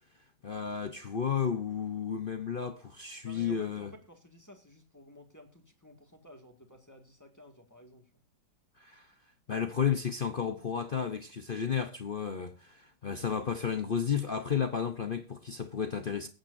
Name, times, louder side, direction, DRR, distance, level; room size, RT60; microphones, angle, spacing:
voice 1, 0.4-3.9 8.8-9.1 9.5-16.3, left 7 dB, 50° left, 0.6 m, -32 dB
voice 2, 3.2-8.2, equal, 10° left, 1.8 m, -54 dB
22.0 x 9.0 x 2.6 m
omnidirectional pair, 2.0 m